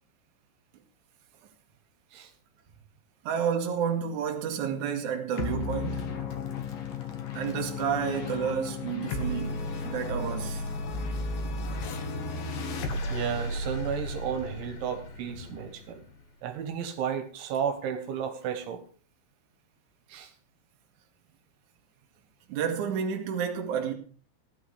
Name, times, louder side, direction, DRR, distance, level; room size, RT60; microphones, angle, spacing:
voice 1, 3.2-6.2 7.3-10.7 22.5-23.9, right 7 dB, 55° right, 2.5 m, -30 dB
sound 1, 5.4-16.2, left 3 dB, 60° left, 2.8 m, -34 dB
voice 2, 13.1-16.0 16.4-18.8 20.1-20.3, right 8 dB, 75° right, 3.5 m, -33 dB
16.0 x 12.0 x 3.5 m
omnidirectional pair, 5.6 m